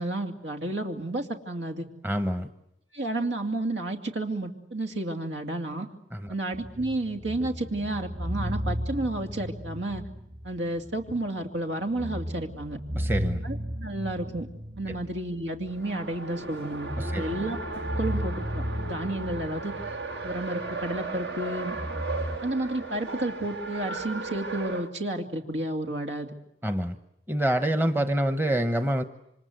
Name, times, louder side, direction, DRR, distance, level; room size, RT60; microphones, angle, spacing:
voice 1, 0.0-1.9 2.9-5.9 6.3-10.0 10.4-12.8 13.4-13.6 13.8-14.5 14.8-19.7 20.2-21.8 22.4-26.3, right 1 dB, 85° right, 4 dB, 2.7 m, -31 dB
voice 2, 2.0-2.5 6.1-6.3 13.0-13.4 17.0-17.3 26.6-27.0 27.3-29.0, right 1 dB, 10° right, 8 dB, 1.0 m, -26 dB
sound 1, 6.5-11.2 11.5-11.6 11.9-16.1 16.7-21.0 21.7-22.4, equal, 45° right, 5.1 m, -34 dB
Race car auto racing, 15.7-24.9, right 3 dB, 65° right, 2.1 m, -36 dB
28.0 x 26.0 x 8.1 m, 0.80 s
head